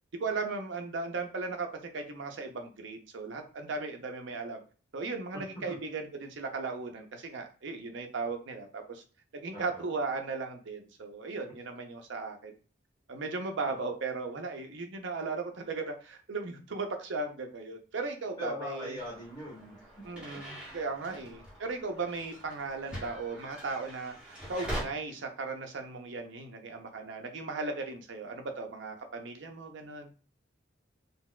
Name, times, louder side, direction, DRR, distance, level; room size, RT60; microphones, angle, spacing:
voice 1, 0.2-1.7 1.9-4.6 4.9-9.0 9.3-12.5 13.1-19.0 20.0-30.1, right 3 dB, 65° right, 4 dB, 0.6 m, -37 dB
voice 2, 5.3-5.8 9.5-9.8 13.6-13.7 18.3-19.8 20.1-20.4, equal, 20° left, -5 dB, 1.3 m, -41 dB
sound 1, 19.0-24.8, equal, 5° right, 1.1 m, -43 dB
3.8 x 2.3 x 2.2 m, 0.37 s
head